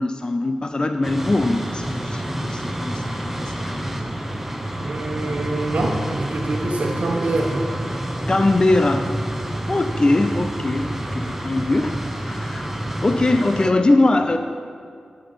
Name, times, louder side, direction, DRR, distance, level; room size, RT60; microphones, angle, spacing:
voice 1, 0.0-4.0 8.3-9.1 9.7-12.7 13.0-14.4, left 2 dB, 35° left, 7 dB, 0.5 m, -21 dB
sound 1, 1.0-13.7, right 1 dB, 10° right, 1.0 m, -28 dB
voice 2, 4.8-7.7, right 2 dB, 70° right, -1 dB, 1.2 m, -25 dB
8.7 x 7.8 x 5.6 m, 2.3 s
cardioid pair, 50°, 3 cm